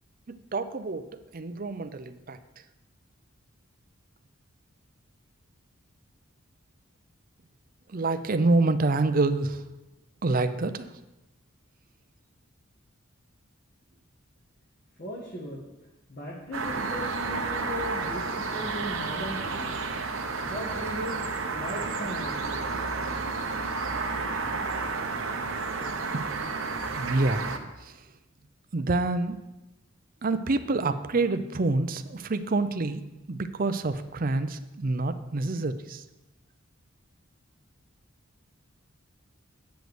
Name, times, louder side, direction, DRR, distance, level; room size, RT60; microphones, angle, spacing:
voice 1, 0.3-2.4 7.9-9.6 10.2-10.9 26.1-26.5 26.9-28.0 28.7-29.4 30.2-33.0 33.3-36.0, right 2 dB, 45° right, 10 dB, 0.6 m, -27 dB
voice 2, 15.0-15.7 16.1-19.8 20.5-22.7, equal, 45° left, -6 dB, 1.9 m, -37 dB
sound 1, 16.5-27.6, right 4 dB, 75° right, 1.0 m, -31 dB
9.1 x 5.2 x 7.9 m, 1.0 s
head